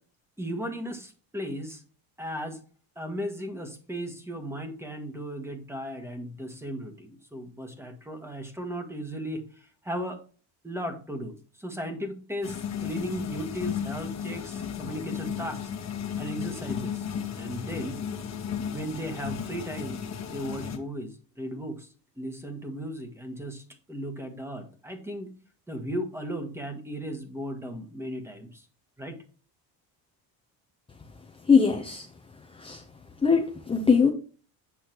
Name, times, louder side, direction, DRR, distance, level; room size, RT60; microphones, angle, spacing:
voice 1, 0.4-1.8 2.2-2.6 3.0-10.2 10.6-15.7 16.2-17.0 17.3-18.0 18.7-25.3 25.7-28.6 29.0-29.2, equal, 5° right, 5 dB, 1.5 m, -36 dB
sound 1, 12.4-20.8, left 7 dB, 40° left, 1.4 m, -34 dB
voice 2, 31.4-32.1 32.5-32.8 33.2-34.1, left 5 dB, 15° left, 2 dB, 0.8 m, -21 dB
8.5 x 6.2 x 3.0 m, 0.39 s
cardioid pair, 115°, 41 cm